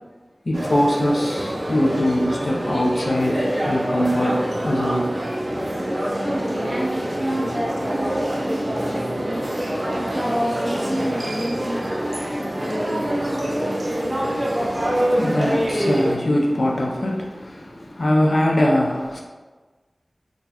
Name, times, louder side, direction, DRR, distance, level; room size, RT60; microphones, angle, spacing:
voice 1, 0.5-3.4 3.7-5.1 14.5-19.2, left 1 dB, 65° left, 0.6 m, -22 dB
sound 1, 0.5-16.2, right 1 dB, 40° right, 0.5 m, -25 dB
voice 2, 6.2-9.4 9.9-13.9, equal, 10° right, 1.1 m, -29 dB
4.3 x 2.3 x 2.8 m
wide cardioid pair, 55°, 0 cm